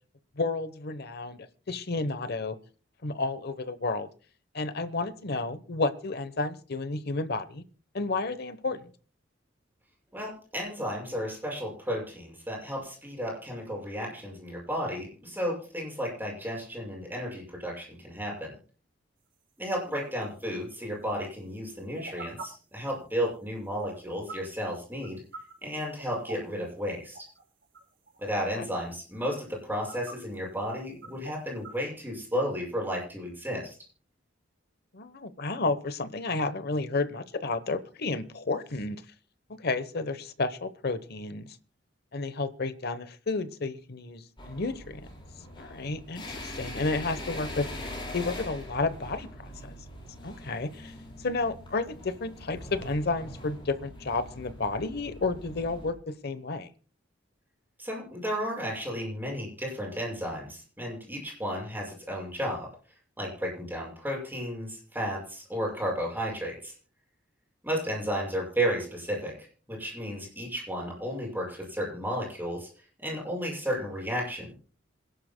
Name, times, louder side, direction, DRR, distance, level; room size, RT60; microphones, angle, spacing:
voice 1, 0.4-2.6 3.0-4.1 4.5-7.6 7.9-8.9 28.5-28.7 34.9-39.0 39.6-41.6 42.1-45.0 45.6-47.7 48.1-49.7 50.2-50.9 51.2-56.7, left 3 dB, 55° left, 13 dB, 1.0 m, -31 dB
voice 2, 10.1-18.6 19.6-25.2 25.6-27.2 28.2-33.7 57.8-62.7 63.2-66.7 67.6-69.4 69.7-72.7 73.0-74.5, equal, 10° right, -2 dB, 6.3 m, -33 dB
sound 1, 19.7-20.1 20.8-20.9 21.5-21.6 21.8-22.4 23.4-23.8 24.1-24.3 24.8-25.1 25.3-25.5 25.8-26.6 27.0-28.3 28.8-28.9 29.3-29.4 29.6-30.4 30.7-30.8 31.0-31.7, right 4 dB, 75° right, 4.5 m, -44 dB
sound 2, 44.4-55.9, left 1 dB, 25° left, 4.9 m, -42 dB
27.0 x 11.5 x 2.2 m, 0.40 s
head